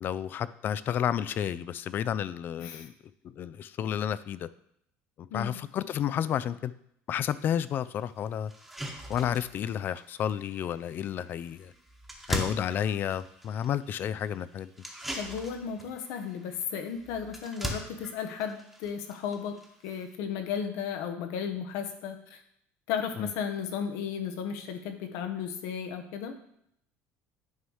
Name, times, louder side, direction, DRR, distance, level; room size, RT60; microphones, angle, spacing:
voice 1, 0.0-2.9 3.2-4.5 5.2-6.7 7.1-8.5 9.1-11.7 12.3-14.7 23.2-23.3, left 9 dB, 40° left, 16 dB, 0.3 m, -31 dB
sound 1, 7.5-7.6 8.0-8.1 8.5-20.1, equal, 5° right, 1.1 m, -41 dB
voice 2, 15.1-19.6 19.8-22.4 22.9-26.3, left 7 dB, 80° left, 6 dB, 1.0 m, -34 dB
9.5 x 3.2 x 5.5 m, 0.73 s
cardioid pair, 130°, 5 cm